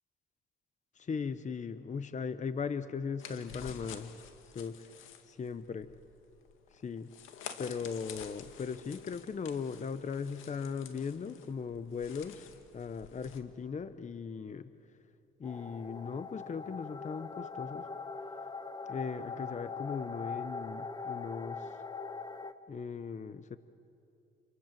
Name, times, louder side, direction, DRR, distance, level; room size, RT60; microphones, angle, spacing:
voice 1, 0.9-4.1 4.4-4.9 5.2-5.9 6.7-7.1 7.6-12.5 12.7-14.7 15.4-17.9 18.9-21.8 22.7-23.6, left 6 dB, 35° left, 12 dB, 0.9 m, -38 dB
sound 1, 3.2-13.4, left 8 dB, 85° left, 2.1 m, -50 dB
Fantasy Landscape, 15.4-22.5, left 4 dB, 20° left, 1.3 m, -42 dB
28.5 x 27.0 x 7.6 m, 2.7 s
cardioid pair, 90°, 20 cm